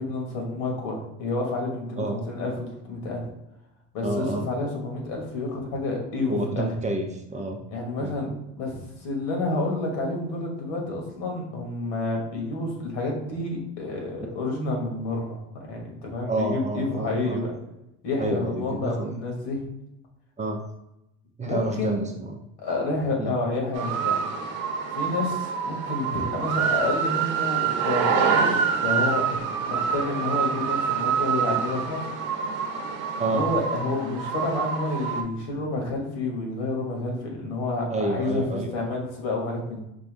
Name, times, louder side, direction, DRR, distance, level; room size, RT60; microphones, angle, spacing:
voice 1, 0.0-3.2 3.9-6.7 7.7-8.3 8.6-15.4 15.7-17.5 18.0-19.6 21.4-22.0 22.6-24.2 24.9-29.3 29.6-32.0 33.3-39.8, left 2 dB, 80° left, 0 dB, 1.5 m, -29 dB
voice 2, 4.0-4.5 6.3-7.6 8.0-8.2 16.3-17.4 18.2-19.2 20.4-20.6 21.4-22.3 23.2-23.3 33.2-33.4 37.9-38.8, right 2 dB, 20° right, 2 dB, 0.5 m, -29 dB
sound 1, 23.7-35.2, right 6 dB, 60° right, 0.8 m, -26 dB
4.6 x 2.7 x 3.3 m, 0.86 s
supercardioid pair, 110°, 36 cm